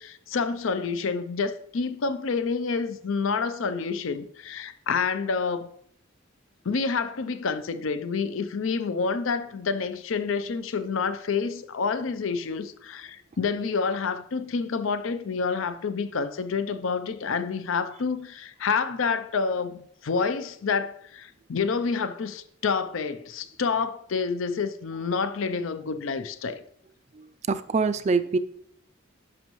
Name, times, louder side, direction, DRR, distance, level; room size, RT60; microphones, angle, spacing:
voice 1, 0.0-5.7 6.6-26.6, left 5 dB, 75° left, 0.5 m, -28 dB
voice 2, 27.1-28.4, right 4 dB, 35° right, 0.3 m, -25 dB
11.0 x 6.0 x 3.0 m
head